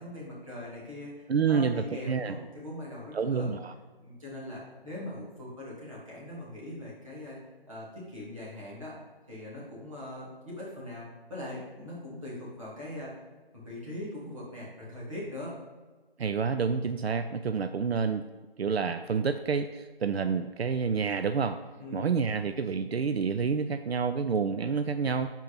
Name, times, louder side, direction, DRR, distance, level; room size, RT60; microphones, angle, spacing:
voice 1, 0.0-3.5 4.0-7.4 7.7-9.0 9.3-13.1 13.5-15.6 21.8-22.2, left 1 dB, 35° right, -8 dB, 2.4 m, -41 dB
voice 2, 1.3-2.3 3.1-3.7 16.2-18.2 18.6-21.6 21.9-25.3, right 5 dB, 80° right, 9 dB, 0.5 m, -28 dB
5.5 x 4.5 x 5.8 m, 1.3 s
figure-of-eight pair, 175°, 31 cm